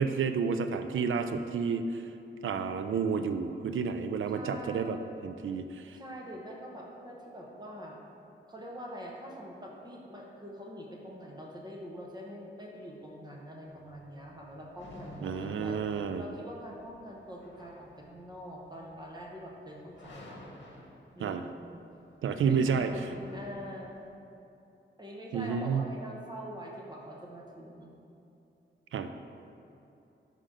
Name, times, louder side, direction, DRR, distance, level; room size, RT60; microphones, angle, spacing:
voice 1, 0.0-2.0 2.4-5.0 5.2-6.0 15.2-16.2 21.2-21.5 22.2-22.9 25.3-25.8 28.9-29.1, right 6 dB, 90° right, 8 dB, 0.4 m, -30 dB
voice 2, 4.3-5.1 5.9-8.0 8.5-20.5 21.1-21.8 22.3-24.0 25.0-27.9, equal, 20° right, -2 dB, 0.8 m, -44 dB
sound 1, 13.7-24.1, left 1 dB, 65° left, 1.0 m, -51 dB
5.8 x 4.9 x 5.1 m, 2.7 s
wide cardioid pair, 175°, 20 cm